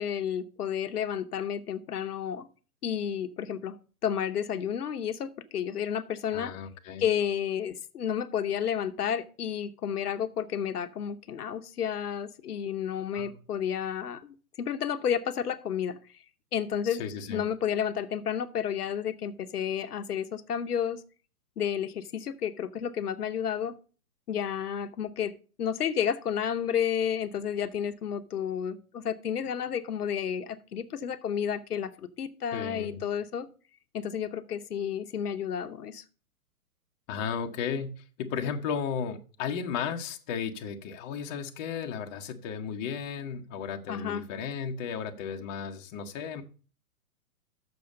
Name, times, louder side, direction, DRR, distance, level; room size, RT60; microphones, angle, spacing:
voice 1, 0.0-2.5 2.8-3.8 4.0-6.5 7.0-16.0 16.5-17.0 17.3-21.0 21.6-23.7 24.3-25.3 25.6-33.5 33.9-36.0 43.9-44.2, left 8 dB, 80° left, 9 dB, 0.9 m, -31 dB
voice 2, 6.3-7.1 13.1-13.3 16.9-17.4 32.5-33.0 37.1-46.4, left 7 dB, 30° left, 4 dB, 0.9 m, -34 dB
6.9 x 6.3 x 6.5 m, 0.38 s
hypercardioid pair, 135°, 45 cm